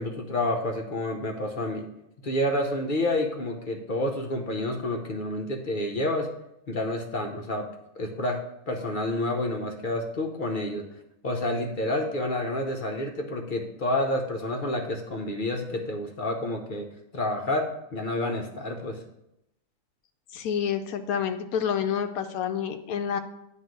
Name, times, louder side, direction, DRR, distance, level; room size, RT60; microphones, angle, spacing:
voice 1, 0.0-1.9 2.2-6.3 6.7-7.7 8.0-10.8 11.2-16.9 17.1-19.0, left 1 dB, 45° left, 3 dB, 0.8 m, -29 dB
voice 2, 20.3-23.2, left 8 dB, 75° left, 8 dB, 1.0 m, -28 dB
9.2 x 3.3 x 6.4 m, 0.83 s
omnidirectional pair, 1.6 m